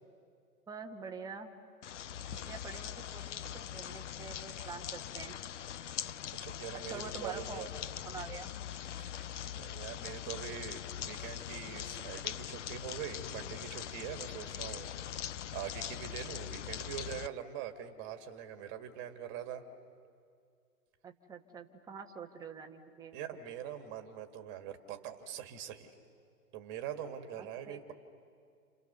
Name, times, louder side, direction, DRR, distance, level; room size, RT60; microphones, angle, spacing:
voice 1, 0.7-1.5 2.2-5.4 6.9-7.6 8.0-8.5 21.0-23.2 27.4-27.9, right 5 dB, 10° right, 3 dB, 1.2 m, -46 dB
sound 1, 1.8-17.3, left 10 dB, 50° left, 0.6 m, -42 dB
voice 2, 5.8-7.7 9.0-14.9 15.5-19.6 23.1-25.9 26.5-27.9, right 9 dB, 25° right, 6 dB, 1.9 m, -43 dB
29.5 x 29.0 x 6.8 m, 2.3 s
hypercardioid pair, 140°, 47 cm